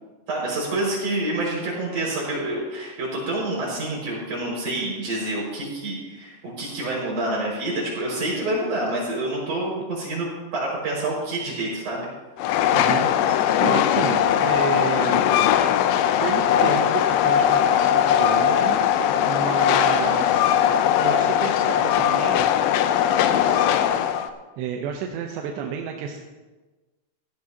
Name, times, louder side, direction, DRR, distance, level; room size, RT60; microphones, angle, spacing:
voice 1, 0.3-12.1, right 2 dB, 40° right, -5 dB, 6.6 m, -27 dB
Train, 12.4-24.3, left 10 dB, 85° left, 2.5 m, -20 dB
voice 2, 12.7-15.4 16.2-20.6 21.0-22.5 23.3-23.7 24.6-26.2, right 7 dB, 75° right, 2 dB, 2.6 m, -31 dB
16.5 x 14.5 x 2.9 m, 1.2 s
omnidirectional pair, 5.7 m